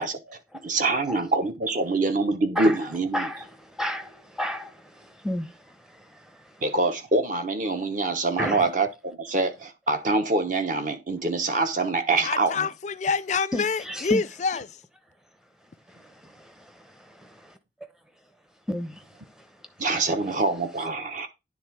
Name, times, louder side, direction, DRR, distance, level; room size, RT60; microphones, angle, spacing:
voice 1, 0.0-3.3 6.6-12.5 19.8-21.3, right 3 dB, 40° right, 1.0 m, -25 dB
voice 2, 3.1-6.6 8.4-8.7 13.5-14.2 15.9-17.6 18.7-20.0, left 1 dB, 5° right, 0.7 m, -34 dB
voice 3, 12.2-14.7, left 5 dB, 35° left, 0.4 m, -27 dB
9.7 x 3.5 x 4.6 m
head